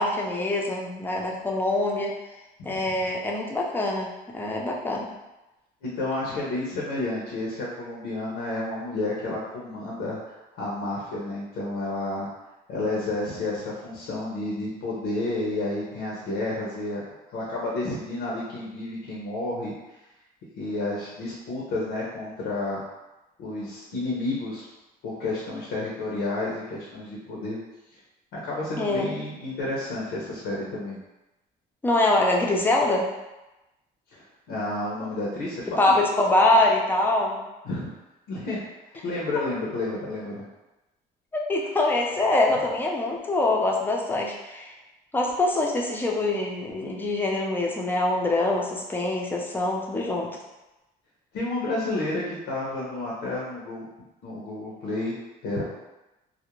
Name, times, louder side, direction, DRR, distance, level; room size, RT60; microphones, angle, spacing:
voice 1, 0.0-2.1 2.6-5.1 28.8-29.0 31.8-33.1 35.8-37.4 41.3-44.7 45.1-50.4, left 2 dB, 10° left, -1 dB, 0.4 m, -24 dB
voice 2, 5.8-10.2 10.5-12.3 12.7-17.0 17.3-19.7 20.6-22.8 23.4-24.7 25.0-27.6 28.3-31.0 34.1-35.7 37.6-37.9 38.3-38.6 39.0-40.4 51.3-53.9 54.2-55.1 55.4-55.6, left 2 dB, 85° left, -5 dB, 0.7 m, -30 dB
2.4 x 2.1 x 3.0 m, 1.0 s
cardioid pair, 110°, 17 cm